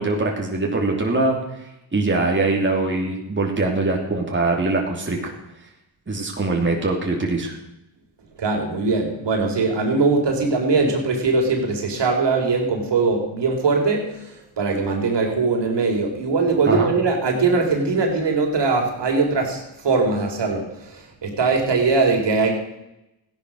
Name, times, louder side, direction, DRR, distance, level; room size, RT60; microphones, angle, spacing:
voice 1, 0.0-1.4 1.9-5.3 6.1-7.6 16.6-16.9, right 2 dB, 25° right, -1 dB, 3.1 m, -22 dB
voice 2, 8.4-22.5, right 4 dB, 60° right, 2 dB, 4.1 m, -21 dB
15.0 x 10.5 x 6.5 m, 0.89 s
cardioid pair, 80°, 47 cm